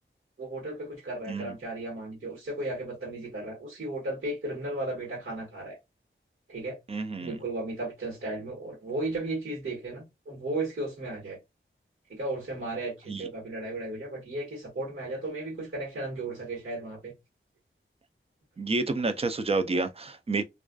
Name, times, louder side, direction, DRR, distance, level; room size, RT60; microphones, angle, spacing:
voice 1, 0.4-5.8 6.5-6.8 7.2-11.4 12.1-17.1, right 2 dB, 70° right, 1.3 m, -35 dB
voice 2, 6.9-7.4 13.1-13.2 18.6-20.4, right 3 dB, 30° right, 0.4 m, -29 dB
2.4 x 2.3 x 2.2 m
wide cardioid pair, 60°, 21 cm